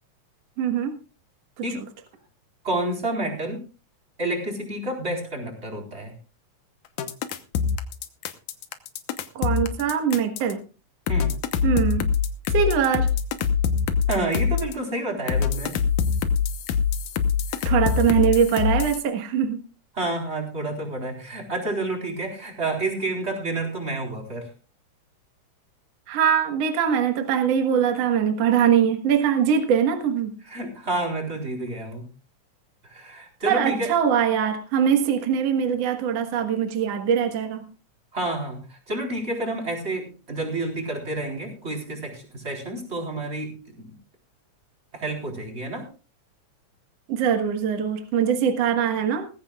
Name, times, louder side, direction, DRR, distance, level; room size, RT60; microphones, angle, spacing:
voice 1, 0.6-0.9 9.4-10.6 11.6-12.0 12.5-13.1 17.7-19.6 26.1-30.3 33.5-37.6 47.1-49.3, right 8 dB, 60° right, 5 dB, 2.5 m, -22 dB
voice 2, 2.6-3.6 4.2-6.1 11.1-11.3 14.1-15.8 17.5-17.8 19.9-24.5 30.4-32.0 32.8-33.9 38.1-43.9 44.9-45.9, right 2 dB, 20° right, 1 dB, 4.2 m, -29 dB
sound 1, 7.0-10.5 11.1-14.7 15.3-19.0, left 6 dB, 85° left, 2.6 m, -24 dB
20.0 x 15.0 x 2.4 m, 0.33 s
omnidirectional pair, 3.4 m